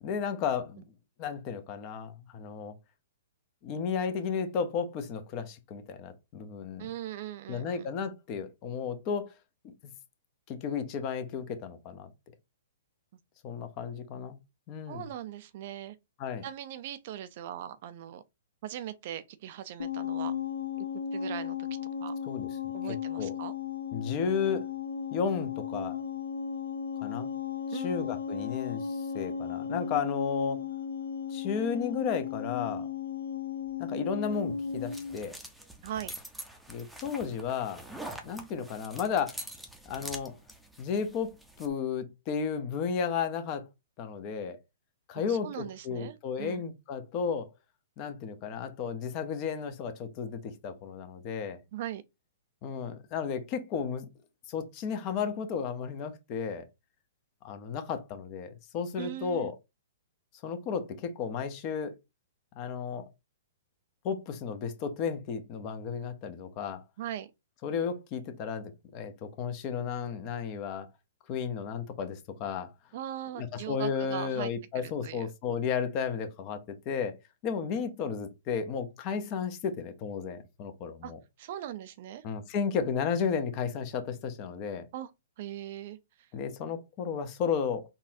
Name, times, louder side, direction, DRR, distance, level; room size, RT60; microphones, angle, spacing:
voice 1, 0.0-0.8 1.2-2.8 3.6-6.9 7.5-9.3 9.6-9.7 10.5-12.1 13.4-14.4 14.7-15.0 16.2-16.4 22.3-23.3 23.9-24.6 25.1-26.0 27.0-27.3 27.7-30.7 31.3-32.9 33.8-35.4 36.7-37.8 38.2-39.4 39.9-40.4 40.8-43.7 44.0-44.6 45.1-47.5 48.0-51.6 52.6-54.1 54.5-56.6 57.4-59.5 60.4-61.9 62.5-63.0 64.0-66.8 67.6-70.9 71.3-72.7 73.4-77.1 77.4-81.2 82.2-84.9 86.3-87.8, left 6 dB, 35° left, 0.7 m, -33 dB
voice 2, 6.8-7.9 14.9-16.0 16.4-18.2 18.6-20.4 20.8-20.9 21.1-22.1 22.7-23.5 27.7-28.2 35.8-36.1 45.1-46.6 51.7-52.0 59.0-59.5 67.0-67.3 72.9-74.5 74.8-75.3 81.0-81.1 81.4-82.2 82.8-83.1 84.9-85.1 85.4-86.3, right 11 dB, 50° right, 0.4 m, -40 dB
sound 1, 19.8-35.2, left 7 dB, 80° left, 0.6 m, -35 dB
sound 2, 34.2-41.7, right 1 dB, ahead, 0.6 m, -45 dB
4.0 x 2.4 x 2.6 m
hypercardioid pair, 125°, 0 cm